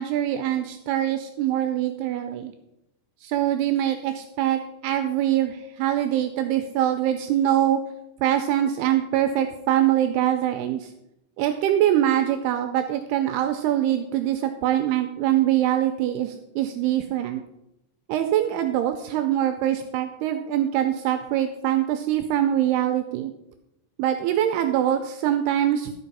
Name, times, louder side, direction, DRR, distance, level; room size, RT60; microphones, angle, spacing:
voice 1, 0.0-2.5 3.2-7.8 8.2-10.9 11.4-17.4 18.1-23.3 24.0-26.0, right 11 dB, 85° right, 6 dB, 2.3 m, -23 dB
11.5 x 5.2 x 5.5 m, 0.85 s
omnidirectional pair, 5.2 m